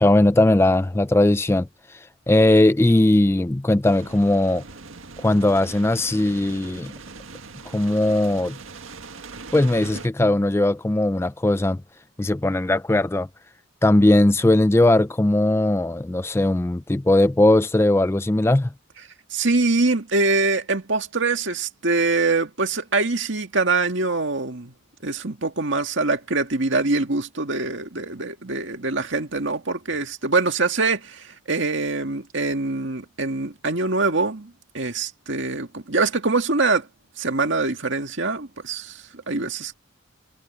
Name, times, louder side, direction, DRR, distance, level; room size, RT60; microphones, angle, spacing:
voice 1, 0.0-4.6 5.2-6.9 7.7-8.6 9.5-11.8 12.2-13.3 13.8-18.7, left 1 dB, 10° left, 0.3 m, -19 dB
sound 1, 3.8-10.1, right 4 dB, 80° right, 1.8 m, -41 dB
voice 2, 19.3-24.7 25.0-36.9 37.2-39.7, right 3 dB, 65° right, 2.0 m, -24 dB
head